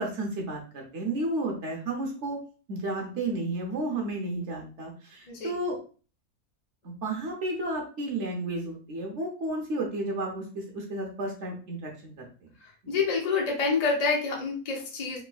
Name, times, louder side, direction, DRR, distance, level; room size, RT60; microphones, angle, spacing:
voice 1, 0.0-2.4 2.7-5.8 6.8-12.3, right 2 dB, 60° right, -1 dB, 0.9 m, -32 dB
voice 2, 12.9-15.2, left 4 dB, 40° left, -2 dB, 0.6 m, -27 dB
3.1 x 3.1 x 2.3 m, 0.37 s
omnidirectional pair, 1.6 m